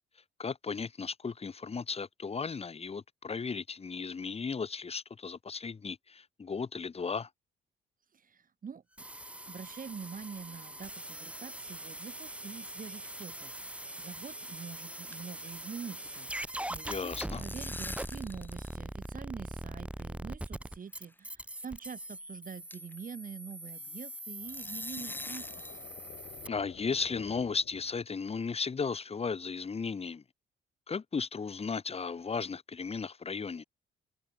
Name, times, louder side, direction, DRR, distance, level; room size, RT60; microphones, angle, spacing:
voice 1, 0.4-7.3 16.9-17.4 26.5-30.2 30.9-33.6, left 5 dB, 30° left, 1.4 m, -35 dB
voice 2, 8.1-8.8 9.4-25.5, right 6 dB, 45° right, 4.2 m, -45 dB
sound 1, 9.0-26.5, right 1 dB, 5° right, 1.6 m, -42 dB
sound 2, 12.5-13.2 13.5-13.7 13.9-14.0 14.4-14.6 14.9-15.7 15.9-16.2 17.0-18.8 19.0-19.1 20.0-20.1 21.0-21.1 21.6-21.7 22.1-22.2 22.7-23.0 24.5-25.8, left 2 dB, 10° left, 0.6 m, -44 dB
sound 3, 24.4-28.2, left 10 dB, 65° left, 1.9 m, -51 dB
cardioid pair, 90°, 20 cm